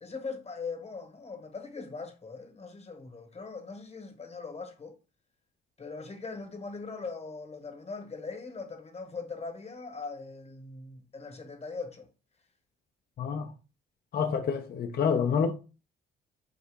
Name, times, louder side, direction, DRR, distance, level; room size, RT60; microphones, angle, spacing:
voice 1, 0.0-4.9 5.8-12.1, left 4 dB, 30° left, 1.2 m, -40 dB
voice 2, 13.2-13.5 14.1-15.5, left 6 dB, 50° left, 0.6 m, -27 dB
4.6 x 2.8 x 3.4 m
cardioid pair, 90°, 20 cm